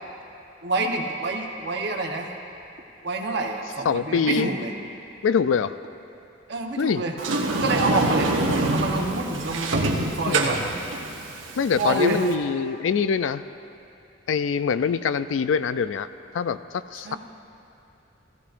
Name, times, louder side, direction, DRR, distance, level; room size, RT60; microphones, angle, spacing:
voice 1, 0.6-2.3 3.0-4.7 6.5-7.2 7.5-8.4 8.7-10.6 11.8-12.2 17.0-17.2, right 2 dB, 60° right, 2 dB, 1.0 m, -27 dB
voice 2, 3.9-4.5 5.2-5.7 6.8-7.0 10.3-10.4 11.6-13.4 14.3-16.1 16.3-16.6 16.9-17.2, left 6 dB, 80° left, 13 dB, 0.4 m, -24 dB
Sliding door, 7.2-12.3, right 2 dB, 85° right, 1.1 m, -25 dB
16.0 x 15.5 x 2.6 m, 2.8 s
head